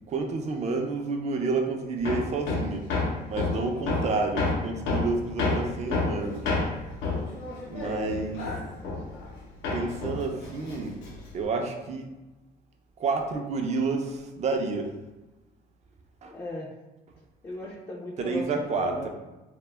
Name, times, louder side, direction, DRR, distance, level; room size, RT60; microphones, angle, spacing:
voice 1, 0.1-2.9 3.3-6.6 7.7-8.5 9.7-12.1 13.0-15.0 16.2-16.4 18.2-19.1, right 3 dB, 40° right, 3 dB, 0.4 m, -30 dB
Hammer, 2.0-9.4 9.6-11.4, left 3 dB, 85° left, 0.6 m, -30 dB
voice 2, 7.8-8.8 16.3-16.7 17.4-19.1, left 1 dB, 20° left, -3 dB, 0.4 m, -38 dB
2.2 x 2.0 x 3.2 m, 1.1 s
cardioid pair, 110°, 17 cm